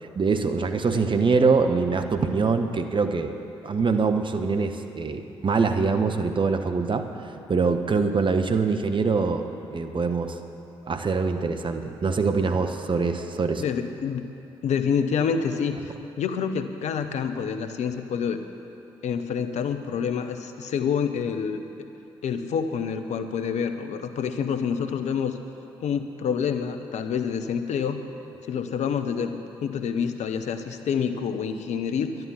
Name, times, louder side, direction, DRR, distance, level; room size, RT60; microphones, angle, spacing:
voice 1, 0.0-3.3 3.6-10.4 10.8-13.6, right 4 dB, 40° right, 7 dB, 1.1 m, -24 dB
voice 2, 13.6-14.3 14.6-18.4 19.0-21.9 22.2-25.4 25.8-28.0 28.5-29.3 29.6-32.2, left 7 dB, 60° left, 8 dB, 0.8 m, -27 dB
11.0 x 11.0 x 7.4 m, 2.9 s
hypercardioid pair, 40°, 13 cm